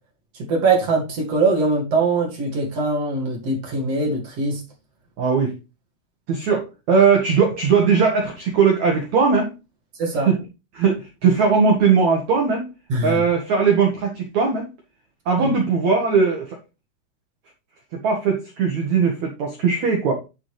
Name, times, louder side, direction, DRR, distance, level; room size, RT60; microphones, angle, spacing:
voice 1, 0.4-4.6 10.0-10.3 12.9-13.2 15.4-15.5, right 3 dB, 45° right, 0 dB, 2.2 m, -22 dB
voice 2, 5.2-5.5 6.3-9.5 10.1-10.4 10.7-12.7 13.0-14.7 15.2-16.6 17.9-20.1, right 5 dB, 80° right, 2 dB, 1.6 m, -19 dB
10.5 x 6.7 x 3.2 m, 0.28 s
omnidirectional pair, 5.7 m